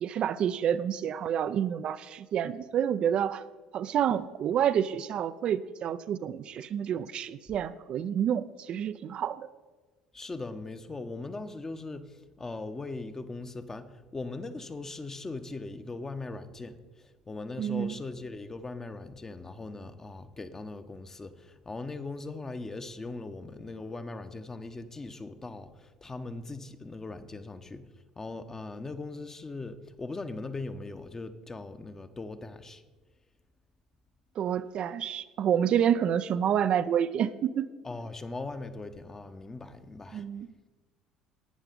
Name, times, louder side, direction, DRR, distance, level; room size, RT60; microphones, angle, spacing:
voice 1, 0.0-3.4 3.7-9.5 17.6-18.0 34.4-37.7 40.1-40.5, right 9 dB, 45° right, 0.4 m, -28 dB
voice 2, 10.1-27.8 28.2-32.8 37.8-40.3, left 3 dB, 20° left, 0.9 m, -40 dB
11.5 x 9.0 x 5.2 m
figure-of-eight pair, 60°, 2 cm